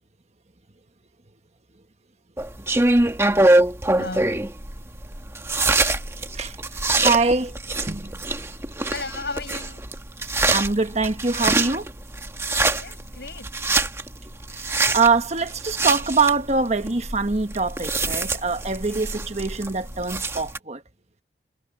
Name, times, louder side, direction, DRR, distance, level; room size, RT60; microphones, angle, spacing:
sound 1, 2.4-20.6, right 2 dB, 15° right, 1.5 m, -24 dB
voice 1, 3.9-4.4 8.9-9.8 12.7-13.5, left 3 dB, 70° left, 6.7 m, -35 dB
voice 2, 6.8-7.6 7.9-8.1 10.5-11.9 14.5-20.8, right 4 dB, 40° right, 1.4 m, -24 dB
head